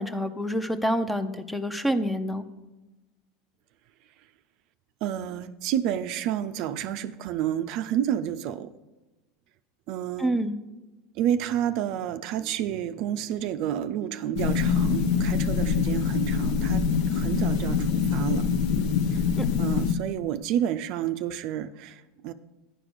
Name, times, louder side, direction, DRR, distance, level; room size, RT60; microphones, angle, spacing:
voice 1, 0.0-2.4 10.2-10.5 19.4-19.5, equal, 5° left, 10 dB, 0.6 m, -27 dB
voice 2, 5.0-8.7 9.9-10.4 11.2-16.8 17.1-18.5 19.1-19.2 19.6-22.3, right 10 dB, 55° right, 11 dB, 0.4 m, -30 dB
sound 1, 14.4-19.9, left 6 dB, 60° left, 0.6 m, -24 dB
10.0 x 5.0 x 6.2 m, 1.1 s
hypercardioid pair, 90°, 0 cm